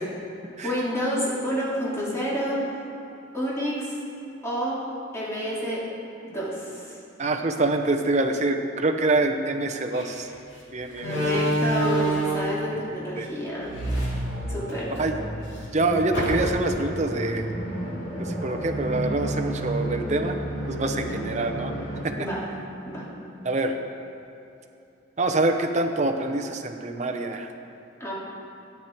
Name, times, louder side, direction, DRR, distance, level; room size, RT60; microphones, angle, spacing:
voice 1, 0.6-2.6 3.3-4.0 4.4-4.8 5.1-5.8 6.2-7.0 11.0-13.7 14.5-14.9 20.9-21.2 22.2-22.4 22.8-23.1 28.0-28.1, equal, 15° left, -7 dB, 2.7 m, -29 dB
voice 2, 7.2-10.3 10.7-11.4 13.2-13.3 15.0-15.2 15.7-17.5 18.2-20.4 20.7-21.7 22.0-22.1 23.4-23.7 25.2-27.5, right 2 dB, 35° right, 5 dB, 0.7 m, -25 dB
Slam, 9.9-10.1 11.0-12.6 13.6-15.0 15.4-15.5 16.1-16.8, right 1 dB, 65° left, 2.5 m, -26 dB
sound 1, 13.6-22.0, right 1 dB, 80° left, 3.0 m, -33 dB
13.0 x 9.4 x 4.5 m, 2.8 s
head